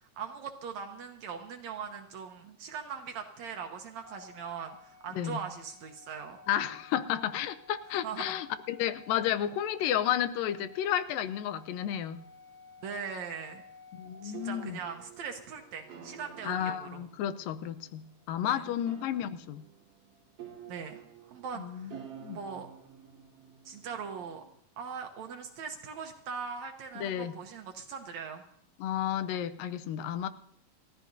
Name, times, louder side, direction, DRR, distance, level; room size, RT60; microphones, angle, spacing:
voice 1, 0.2-6.4 8.0-8.3 12.8-13.6 14.2-17.0 18.5-18.7 20.7-21.9 22.3-22.7 23.7-24.4 24.8-28.4, right 6 dB, 70° right, 4 dB, 1.9 m, -40 dB
Organ, 4.0-14.9, left 4 dB, 5° right, 7.0 m, -55 dB
voice 2, 6.5-12.2 14.0-14.8 16.4-19.6 21.6-22.4 27.0-27.3 28.8-30.3, left 10 dB, 85° left, 11 dB, 2.4 m, -32 dB
sound 1, 14.0-24.5, right 8 dB, 50° right, 2.5 m, -51 dB
30.0 x 14.0 x 2.7 m, 0.72 s
omnidirectional pair, 3.9 m